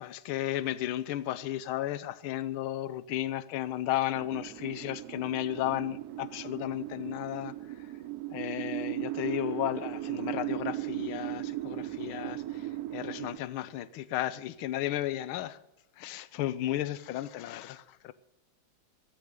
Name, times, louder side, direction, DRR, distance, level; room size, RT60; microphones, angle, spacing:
voice 1, 0.0-7.5 8.3-15.6 16.0-18.1, left 13 dB, 80° left, 1.6 m, -34 dB
sound 1, 4.1-13.4, right 15 dB, 70° right, 0.9 m, -37 dB
15.0 x 11.5 x 6.7 m
omnidirectional pair, 2.4 m